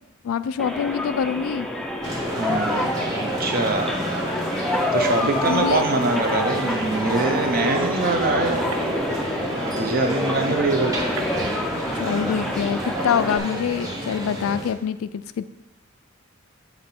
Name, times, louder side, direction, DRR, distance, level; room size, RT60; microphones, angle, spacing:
voice 1, 0.2-1.7 5.2-5.8 10.4-10.6 11.9-15.5, left 7 dB, 70° left, 13 dB, 0.3 m, -25 dB
sound 1, 0.6-13.4, left 1 dB, ahead, 0.4 m, -28 dB
sound 2, 2.0-14.7, equal, 15° right, 1.1 m, -30 dB
voice 2, 2.3-4.0 4.9-8.7 9.8-10.9, right 3 dB, 45° right, 5 dB, 0.8 m, -24 dB
sound 3, 5.4-9.5 11.2-12.3, right 2 dB, 90° right, 0.5 m, -34 dB
7.3 x 4.0 x 4.4 m, 1.0 s
head